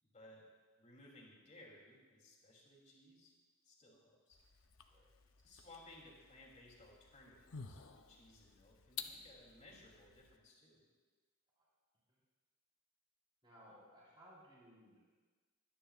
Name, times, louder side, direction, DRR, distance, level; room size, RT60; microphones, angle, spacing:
voice 1, 0.0-0.5 0.8-3.4 3.6-4.4 5.4-10.8, left 1 dB, 35° left, -3 dB, 2.9 m, -60 dB
sound 1, 4.3-10.4, left 7 dB, 60° left, 0.7 m, -53 dB
voice 2, 13.4-15.0, equal, 20° right, -7 dB, 4.2 m, -61 dB
23.0 x 9.9 x 2.4 m, 1.4 s
head